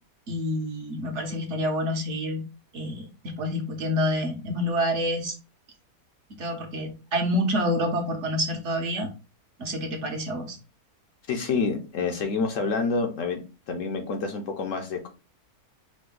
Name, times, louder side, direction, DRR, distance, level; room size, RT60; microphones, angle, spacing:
voice 1, 0.3-2.4 2.7-5.4 6.4-9.1 9.6-10.6, equal, 55° right, 1.1 m, -28 dB
voice 2, 11.3-13.4 13.7-15.1, left 4 dB, 65° left, 1.0 m, -28 dB
5.0 x 2.2 x 3.7 m
omnidirectional pair, 1.6 m